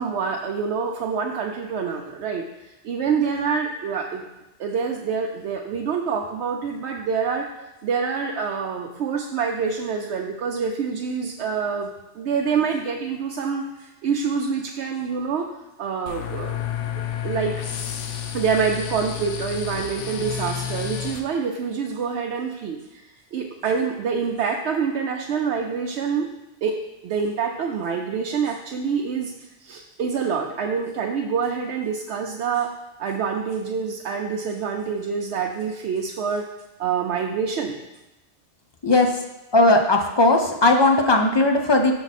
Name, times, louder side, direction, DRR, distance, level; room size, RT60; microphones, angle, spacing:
voice 1, 0.0-4.2 4.6-7.5 7.8-11.9 12.2-15.5 15.8-16.6 17.2-17.5 18.3-23.0 23.3-26.3 26.6-26.8 27.0-29.3 29.6-32.7 33.0-36.5 36.8-37.7, right 6 dB, 70° right, 1 dB, 0.8 m, -26 dB
sound 1, 16.1-21.2, left 9 dB, 80° left, 1.0 m, -30 dB
voice 2, 39.5-41.9, left 2 dB, 45° left, 3 dB, 0.3 m, -17 dB
6.0 x 6.0 x 4.1 m, 0.99 s
omnidirectional pair, 1.2 m